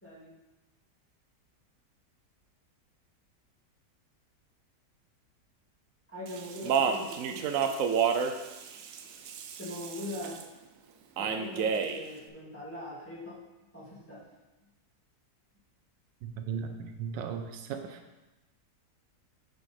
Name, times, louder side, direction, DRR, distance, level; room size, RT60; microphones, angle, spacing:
voice 1, 0.0-0.3 6.1-7.7 9.6-10.4 11.2-13.4 13.7-14.2, left 1 dB, 5° left, -8 dB, 2.0 m, -41 dB
Speech, 6.3-10.4 11.2-12.0, right 7 dB, 65° right, 0.8 m, -30 dB
voice 2, 16.2-18.0, right 6 dB, 90° right, 6 dB, 1.4 m, -37 dB
8.3 x 4.8 x 4.3 m, 1.1 s
omnidirectional pair, 1.9 m